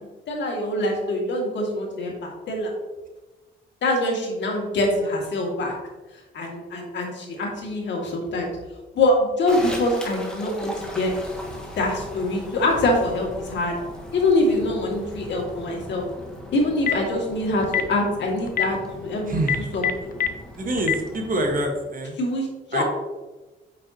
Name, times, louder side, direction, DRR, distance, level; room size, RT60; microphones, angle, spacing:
voice 1, 0.3-2.7 3.8-5.7 6.3-8.5 8.9-11.1 11.8-13.7 14.1-16.1 16.5-19.4 19.7-20.1 22.2-22.8, left 1 dB, 65° left, 0 dB, 2.3 m, -24 dB
sound 1, 9.5-21.6, left 1 dB, 5° left, 1.5 m, -39 dB
Telephone, 16.6-17.1 17.6-17.9 18.5-18.6 19.4-20.3 20.8-21.0, left 9 dB, 45° left, 0.7 m, -22 dB
voice 2, 19.3-19.7 20.6-22.2 22.7-22.8, right 1 dB, 45° right, 3 dB, 1.5 m, -26 dB
8.0 x 6.1 x 2.9 m, 1.2 s
cardioid pair, 90°, 20 cm